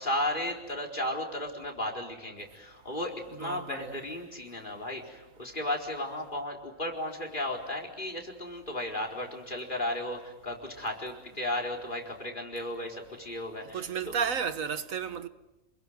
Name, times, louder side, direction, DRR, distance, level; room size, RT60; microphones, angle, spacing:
voice 1, 0.0-14.2, left 1 dB, 35° left, 4.5 m, -35 dB
voice 2, 3.3-4.0 13.7-15.3, right 6 dB, 80° right, 1.7 m, -33 dB
28.5 x 21.5 x 9.4 m
omnidirectional pair, 1.4 m